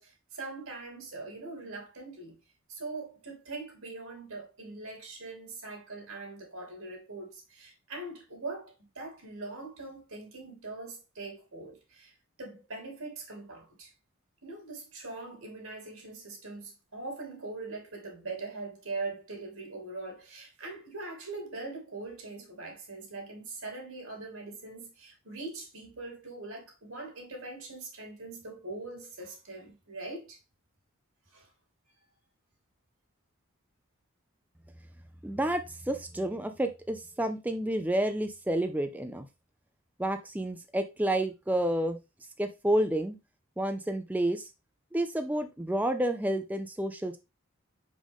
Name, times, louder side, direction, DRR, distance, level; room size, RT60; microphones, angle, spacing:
voice 1, 0.0-2.4 2.7-13.9 14.4-30.4 31.3-31.5, right 3 dB, 85° right, 2.8 m, -42 dB
voice 2, 35.2-39.3 40.0-42.0 42.4-43.2 43.6-44.5 44.9-47.2, right 1 dB, 5° right, 0.4 m, -30 dB
5.2 x 5.1 x 3.5 m
head